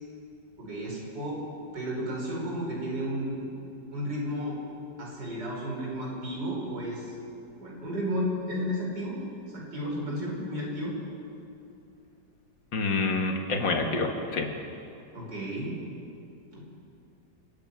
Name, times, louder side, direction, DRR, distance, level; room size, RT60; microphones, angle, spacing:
voice 1, 0.6-1.4 1.7-3.5 3.9-4.6 5.0-7.1 7.6-9.2 9.5-11.0 15.1-15.7 16.5-16.6, equal, 70° right, -3 dB, 5.9 m, -33 dB
voice 2, 12.7-14.5, left 3 dB, 85° left, 3 dB, 2.6 m, -27 dB
29.5 x 10.5 x 8.9 m, 2.7 s
omnidirectional pair, 2.0 m